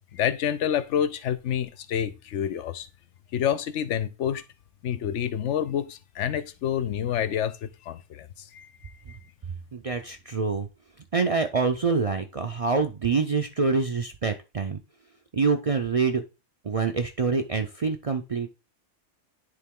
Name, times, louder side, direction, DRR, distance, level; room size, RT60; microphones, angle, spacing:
voice 1, 0.1-2.9 3.3-4.4 4.8-9.2, left 9 dB, 80° left, 1.0 m, -28 dB
voice 2, 9.7-10.7 11.1-14.8 15.3-16.2 16.6-18.5, right 4 dB, 40° right, 0.5 m, -26 dB
9.8 x 3.9 x 3.6 m
omnidirectional pair, 1.2 m